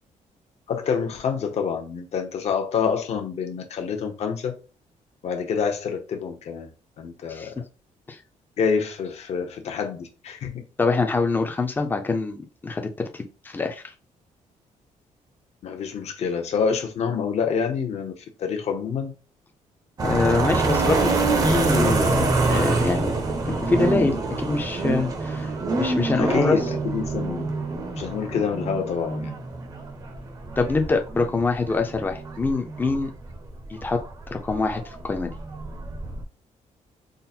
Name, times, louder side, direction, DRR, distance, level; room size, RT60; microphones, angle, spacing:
voice 1, 0.7-4.5 5.2-6.7 7.0-7.5 8.6-10.6 15.6-19.1 26.2-27.5 28.0-29.3, left 6 dB, 55° left, 0.8 m, -27 dB
voice 2, 10.8-13.9 20.0-23.1 23.5-25.5 25.8-26.6 30.6-33.1 33.7-34.0 34.3-35.3, left 3 dB, 15° left, 0.5 m, -25 dB
sound 1, 20.0-36.2, right 3 dB, 30° right, 0.6 m, -26 dB
3.8 x 2.1 x 4.2 m
wide cardioid pair, 180°, 13 cm